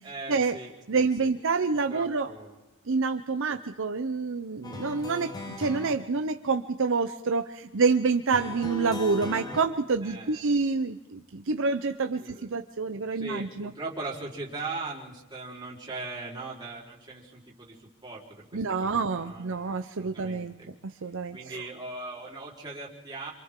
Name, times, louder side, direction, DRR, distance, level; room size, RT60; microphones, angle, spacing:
voice 1, 0.0-1.3 1.9-2.6 3.5-3.6 10.0-10.6 12.2-12.5 12.9-20.7 21.0-23.3, right 3 dB, 20° right, -6 dB, 4.2 m, -40 dB
voice 2, 0.9-2.3 2.9-13.7 18.5-20.5 21.0-21.6, right 4 dB, 60° right, 7 dB, 0.7 m, -27 dB
sound 1, 4.6-5.9 8.3-9.6, left 2 dB, 15° left, 1.0 m, -37 dB
27.5 x 26.5 x 3.8 m, 1.1 s
head